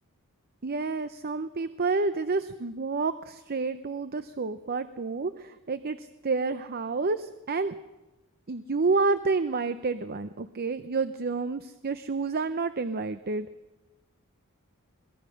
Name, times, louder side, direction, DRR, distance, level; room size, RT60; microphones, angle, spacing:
voice 1, 0.6-7.7 8.5-13.5, right 4 dB, 45° right, 11 dB, 0.7 m, -29 dB
22.5 x 20.5 x 6.4 m, 1.0 s
head